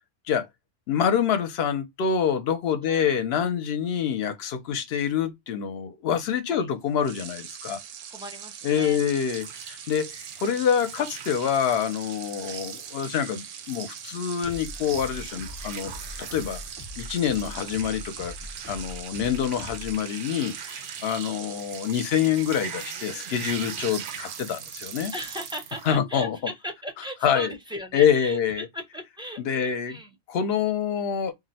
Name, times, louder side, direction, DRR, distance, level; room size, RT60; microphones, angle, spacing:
voice 1, 0.9-7.8 8.6-15.9 16.2-16.6 17.0-18.3 18.7-25.1 25.9-26.4 27.2-27.5 27.9-28.7 29.4-30.0 30.3-31.3, left 8 dB, 65° left, 0.8 m, -26 dB
voice 2, 2.8-3.1 4.7-4.8 6.5-6.7 8.1-9.0 12.4-12.6 21.0-21.4 25.1-30.1, equal, 5° right, 0.3 m, -38 dB
sound 1, 7.0-25.6, right 8 dB, 85° right, 0.9 m, -42 dB
sound 2, 9.3-25.9, right 7 dB, 60° right, 0.6 m, -42 dB
sound 3, 14.4-20.1, left 2 dB, 15° left, 0.7 m, -42 dB
2.6 x 2.1 x 3.9 m
omnidirectional pair, 1.3 m